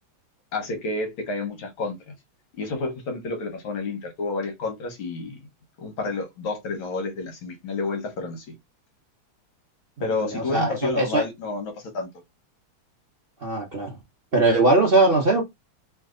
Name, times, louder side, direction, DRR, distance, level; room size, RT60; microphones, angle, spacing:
voice 1, 0.5-2.1 2.6-5.4 5.8-8.5 10.0-12.1, left 3 dB, 75° left, 1.9 m, -30 dB
voice 2, 10.0-11.3 13.4-14.0 14.3-15.4, right 2 dB, 65° right, 0.5 m, -21 dB
3.3 x 3.2 x 3.7 m
omnidirectional pair, 2.3 m